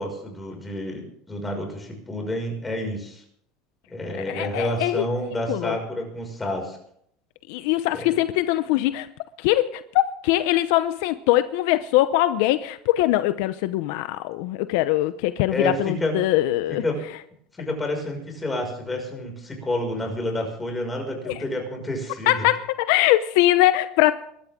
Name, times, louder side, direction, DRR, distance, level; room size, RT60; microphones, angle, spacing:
voice 1, 0.0-3.2 3.9-6.8 7.9-8.1 15.5-16.2 16.7-17.0 17.5-22.3, left 1 dB, 15° left, 5.8 m, -29 dB
voice 2, 4.3-5.0 5.5-5.8 7.5-9.1 9.4-16.8 21.3-21.4 22.3-24.1, left 15 dB, 75° left, 0.7 m, -22 dB
23.0 x 13.0 x 3.7 m
supercardioid pair, 125°, 0 cm